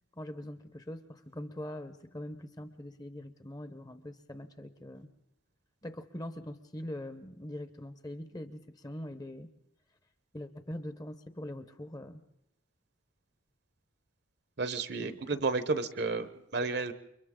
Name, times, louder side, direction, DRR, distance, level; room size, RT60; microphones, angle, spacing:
voice 1, 0.2-5.1 5.8-9.5 10.3-12.2 15.0-15.2, left 1 dB, 20° left, 10 dB, 0.9 m, -42 dB
voice 2, 14.6-16.9, right 3 dB, 50° right, 12 dB, 1.0 m, -32 dB
29.5 x 24.5 x 3.8 m, 0.81 s
head